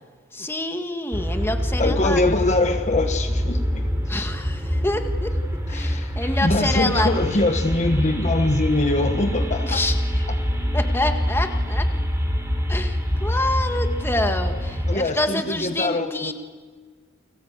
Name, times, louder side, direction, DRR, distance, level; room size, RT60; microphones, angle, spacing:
voice 1, 0.3-2.2 4.1-5.3 5.7-7.1 9.6-9.9 10.7-11.8 12.7-16.3, left 2 dB, 10° left, 5 dB, 1.7 m, -27 dB
sound 1, 1.1-15.0, equal, 15° right, 3.3 m, -25 dB
voice 2, 1.8-4.3 5.7-9.8 14.9-16.3, left 2 dB, 35° left, 5 dB, 1.3 m, -23 dB
30.0 x 21.0 x 8.2 m, 1.5 s
head